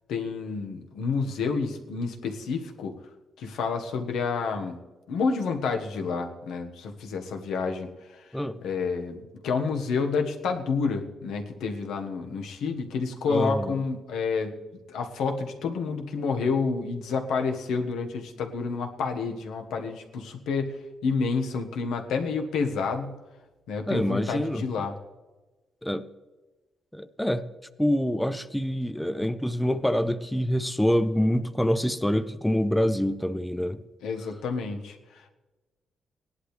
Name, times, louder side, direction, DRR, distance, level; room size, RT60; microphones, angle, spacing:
voice 1, 0.1-2.9 3.4-4.8 5.1-8.2 8.6-14.6 14.9-23.2 23.7-24.9 34.0-35.3, left 5 dB, 90° left, 4 dB, 1.4 m, -29 dB
voice 2, 8.3-8.6 13.3-13.8 23.9-24.6 25.8-26.1 26.9-27.5 27.8-33.8, equal, 5° left, 11 dB, 0.4 m, -26 dB
18.0 x 11.0 x 3.3 m, 1.2 s
cardioid pair, 155°, 0 cm